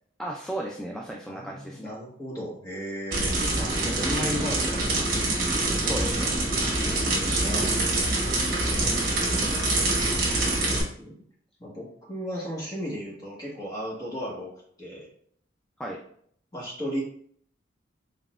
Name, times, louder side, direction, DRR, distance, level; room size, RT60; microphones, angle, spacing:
voice 1, 0.2-1.9 5.8-6.3 15.8-16.0, right 1 dB, 5° left, -1 dB, 0.3 m, -34 dB
voice 2, 1.3-5.2 6.9-8.1 11.0-11.2 11.6-14.5 14.8-15.1 16.5-17.0, equal, 20° left, -5 dB, 1.4 m, -36 dB
sound 1, 3.1-10.8, right 2 dB, 50° right, 1.3 m, -25 dB
4.0 x 3.7 x 2.4 m, 0.62 s
head